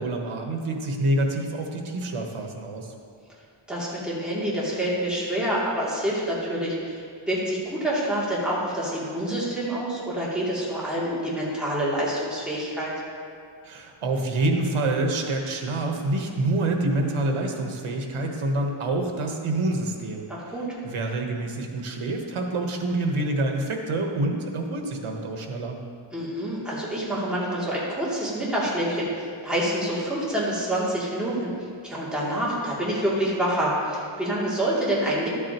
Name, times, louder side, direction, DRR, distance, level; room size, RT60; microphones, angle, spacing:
voice 1, 0.0-2.9 13.6-20.3 20.8-25.8, right 2 dB, 90° right, 3 dB, 1.2 m, -27 dB
voice 2, 3.7-12.9 20.3-20.8 26.1-31.5 31.8-35.3, right 1 dB, ahead, -8 dB, 2.6 m, -27 dB
12.5 x 8.6 x 3.0 m, 2.3 s
wide cardioid pair, 125°, 49 cm